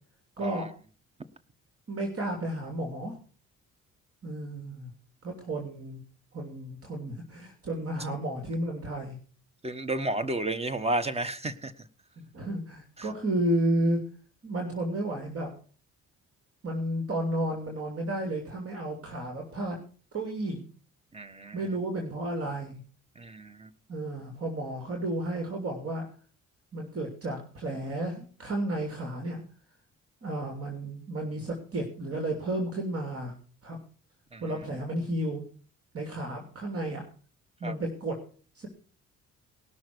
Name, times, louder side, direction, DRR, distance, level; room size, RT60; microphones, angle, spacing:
voice 1, 0.4-0.7 1.9-3.2 4.2-4.9 5.2-6.0 6.3-9.2 12.2-14.0 14.4-15.5 16.6-19.8 20.1-20.6 21.5-22.8 23.9-26.0 26.7-29.4 30.2-33.3 33.6-33.8 34.4-35.4 35.9-37.0 37.6-38.2 38.5-38.7, right 1 dB, 50° right, 2 dB, 3.1 m, -32 dB
voice 2, 9.6-11.7 21.1-21.6 23.2-23.7 34.3-34.4 37.6-37.7, right 2 dB, 20° right, 11 dB, 1.5 m, -32 dB
19.0 x 6.5 x 6.2 m, 0.40 s
cardioid pair, 90°, 30 cm